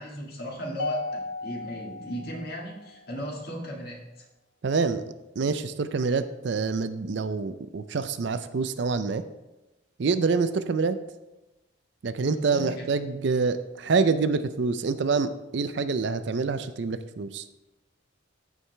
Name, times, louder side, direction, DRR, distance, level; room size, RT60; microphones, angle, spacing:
voice 1, 0.0-4.3 12.2-12.9, equal, 50° left, -2 dB, 1.9 m, -36 dB
Mallet percussion, 0.8-3.2, left 3 dB, 65° left, 0.6 m, -36 dB
voice 2, 4.6-9.2 10.0-11.0 12.0-17.5, right 4 dB, 60° right, 11 dB, 0.4 m, -26 dB
14.5 x 4.8 x 3.3 m, 0.99 s
head